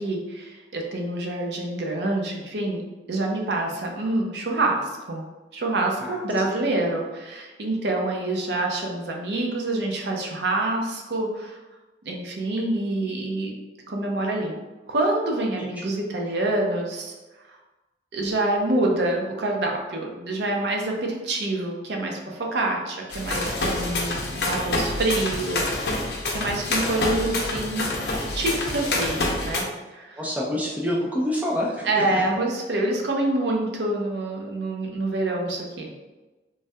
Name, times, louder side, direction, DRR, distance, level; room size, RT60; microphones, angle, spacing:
voice 1, 0.0-2.8 3.1-5.3 5.5-11.6 12.0-13.5 13.9-14.6 14.9-17.1 17.5-17.6 18.1-26.0 26.3-27.9 28.3-29.7 29.9-30.3 31.8-35.9, right 2 dB, 70° right, 0 dB, 0.5 m, -26 dB
sound 1, 23.1-29.6, left 2 dB, 65° left, 0.5 m, -27 dB
voice 2, 30.1-32.2, equal, 10° right, -4 dB, 0.4 m, -26 dB
3.2 x 2.2 x 2.6 m, 1.2 s
head